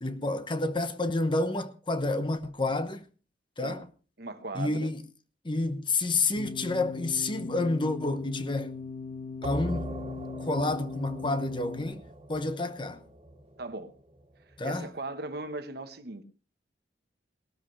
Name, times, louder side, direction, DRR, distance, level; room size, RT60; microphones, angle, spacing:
voice 1, 0.0-3.0 3.6-3.8 4.5-5.0 5.4-8.7 9.4-9.9 10.5-12.0 12.3-13.0 14.6-14.9, left 2 dB, 25° left, 1.0 m, -29 dB
voice 2, 4.2-4.9 13.6-13.9 14.6-16.2, right 2 dB, 60° right, 1.2 m, -38 dB
sound 1, 6.4-11.8, left 4 dB, 45° left, 2.2 m, -39 dB
sound 2, 9.4-14.8, right 1 dB, 30° right, 2.0 m, -42 dB
18.0 x 13.0 x 3.3 m
head